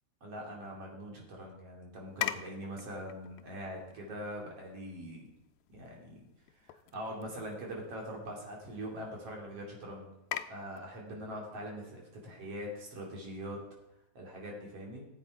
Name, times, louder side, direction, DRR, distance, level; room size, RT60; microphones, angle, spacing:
voice 1, 0.2-5.3 5.7-6.2 6.6-10.1 10.5-13.6 14.1-15.1, equal, 45° right, -1 dB, 3.5 m, -42 dB
sound 1, 2.1-14.1, left 12 dB, 85° left, 1.6 m, -46 dB
15.0 x 8.3 x 4.7 m, 0.87 s
omnidirectional pair, 4.0 m